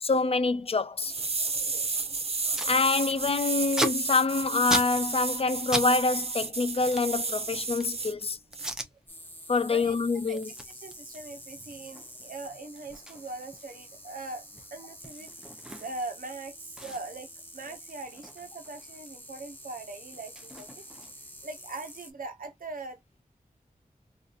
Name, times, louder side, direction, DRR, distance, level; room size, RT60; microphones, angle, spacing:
voice 1, 0.0-1.1 2.7-8.4 9.5-10.5, left 4 dB, 45° left, 0.4 m, -26 dB
sound 1, 1.0-8.1 8.5-8.7, right 4 dB, 45° right, 0.6 m, -32 dB
Packing tape duct tape, 2.5-2.7 3.1-5.9 6.2-8.0 8.5-8.9 9.4-9.6 9.9-16.2 16.4-16.5 16.8-19.1 19.4-21.4, equal, 5° right, 0.8 m, -37 dB
sound 2, 9.1-22.1, equal, 15° left, 1.2 m, -48 dB
voice 2, 10.7-14.4 14.7-15.3 15.8-17.3 17.5-20.8 21.4-23.2, right 3 dB, 75° right, 1.1 m, -41 dB
3.8 x 2.7 x 2.5 m
wide cardioid pair, 85°, 14 cm